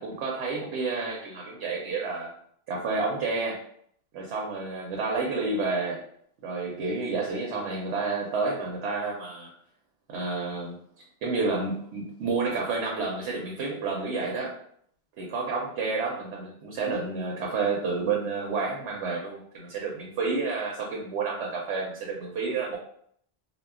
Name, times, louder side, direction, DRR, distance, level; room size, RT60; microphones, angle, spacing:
voice 1, 0.0-2.3 2.7-3.6 4.1-6.0 6.4-9.5 10.1-10.8 11.2-14.6 15.2-22.8, right 4 dB, 80° right, -1 dB, 0.9 m, -30 dB
2.1 x 2.0 x 3.5 m, 0.66 s
omnidirectional pair, 1.2 m